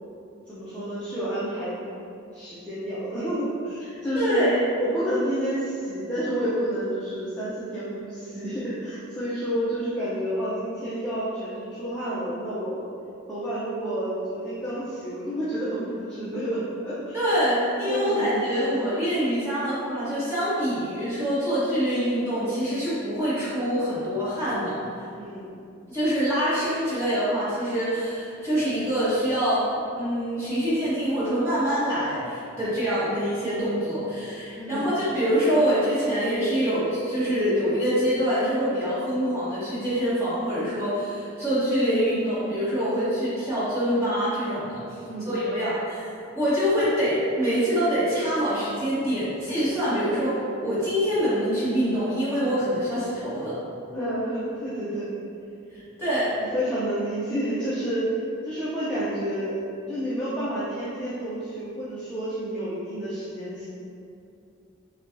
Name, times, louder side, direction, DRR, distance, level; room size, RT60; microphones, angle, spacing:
voice 1, 0.5-1.8 2.3-12.9 13.3-17.2 17.6-18.9 25.2-25.5 34.6-34.9 45.0-45.4 53.9-55.1 56.5-58.1 58.4-59.6 59.9-63.6, equal, 5° left, -13 dB, 0.5 m, -29 dB
voice 2, 4.1-4.6 17.1-24.8 25.9-29.6 29.9-44.8 45.2-46.1 46.3-53.6 56.0-56.3, equal, 15° right, -12 dB, 1.2 m, -25 dB
5.5 x 2.3 x 2.5 m, 2.5 s
head